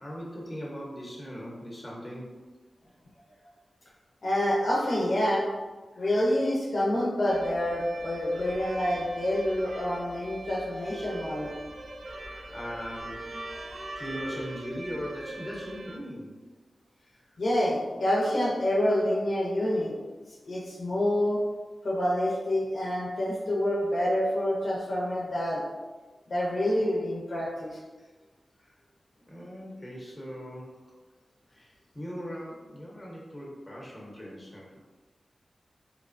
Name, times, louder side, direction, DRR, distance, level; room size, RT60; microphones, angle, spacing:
voice 1, 0.0-2.3 5.9-6.1 8.3-8.5 10.8-10.9 12.2-13.3 13.9-16.4 17.1-17.4 28.0-28.1 28.6-28.7 29.3-30.8 31.5-34.8, equal, 20° left, -4 dB, 0.8 m, -40 dB
voice 2, 4.2-5.5 6.0-11.5 17.4-19.9 20.5-21.4 21.8-25.6 26.3-27.8, left 1 dB, 65° left, -5 dB, 0.6 m, -27 dB
sound 1, 7.3-16.0, right 2 dB, 75° right, 0.4 m, -41 dB
2.8 x 2.1 x 2.5 m, 1.3 s
wide cardioid pair, 75°, 0 cm